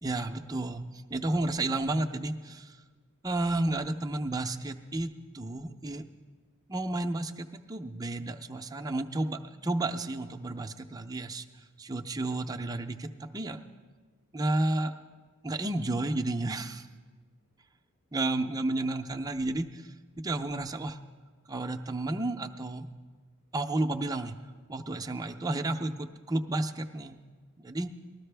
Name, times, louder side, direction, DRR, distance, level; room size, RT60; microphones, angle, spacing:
voice 1, 0.0-0.8 1.1-2.8 3.2-5.1 5.3-6.1 6.7-11.4 11.8-13.6 14.3-14.9 15.4-16.9 18.1-19.9 20.2-21.0 21.5-22.9 23.5-24.3 24.7-27.2 27.6-27.9, right 2 dB, 15° right, 5 dB, 0.5 m, -31 dB
19.5 x 13.5 x 3.4 m, 1.5 s
head